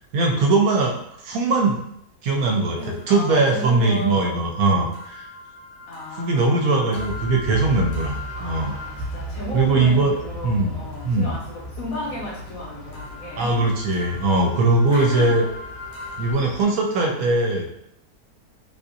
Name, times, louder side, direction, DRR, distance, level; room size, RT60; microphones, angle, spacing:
voice 1, 0.1-0.9 1.2-1.8 2.2-2.8 3.1-5.3 6.2-8.7 9.5-10.1 10.4-10.8 11.0-11.3 13.4-15.4 16.2-17.7, right 3 dB, 70° right, 1 dB, 0.9 m, -20 dB
voice 2, 2.8-4.4 5.9-7.0 8.4-13.7 14.9-15.4, left 1 dB, 65° left, -4 dB, 1.2 m, -34 dB
sound 1, 2.9-9.3 10.9-16.3, left 3 dB, 85° left, 1.5 m, -41 dB
sound 2, 6.9-16.6, equal, 5° right, 0.7 m, -37 dB
3.6 x 2.6 x 2.6 m, 0.76 s
omnidirectional pair, 1.7 m